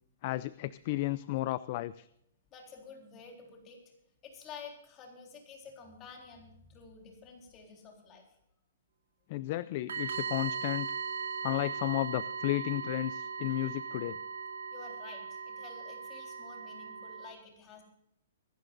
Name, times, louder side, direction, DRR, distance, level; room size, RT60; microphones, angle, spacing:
voice 1, 0.2-2.1 9.3-10.9 11.4-14.2, left 17 dB, 35° left, 17 dB, 0.4 m, -33 dB
voice 2, 2.5-3.8 4.2-8.2 14.7-17.8, left 5 dB, 20° left, 1 dB, 3.8 m, -50 dB
sound 1, 9.9-17.3, right 6 dB, 90° right, 3.6 m, -38 dB
24.5 x 12.0 x 2.6 m, 0.76 s
hypercardioid pair, 165°, 0 cm